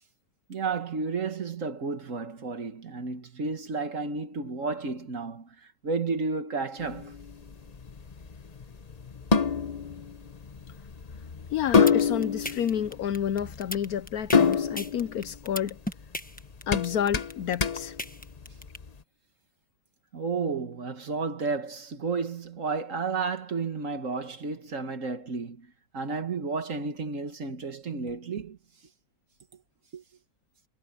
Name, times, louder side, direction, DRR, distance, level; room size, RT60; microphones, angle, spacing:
voice 1, 0.5-5.5 5.8-7.1 20.1-25.7 25.9-28.6 29.9-30.0, right 4 dB, 50° right, 1.9 m, -32 dB
sound 1, 6.8-18.9, left 6 dB, 30° left, 0.7 m, -28 dB
voice 2, 11.5-15.8 16.7-18.0, left 9 dB, 65° left, 1.1 m, -30 dB
sound 2, 11.5-18.8, left 1 dB, 5° left, 1.1 m, -36 dB
omnidirectional pair, 1.9 m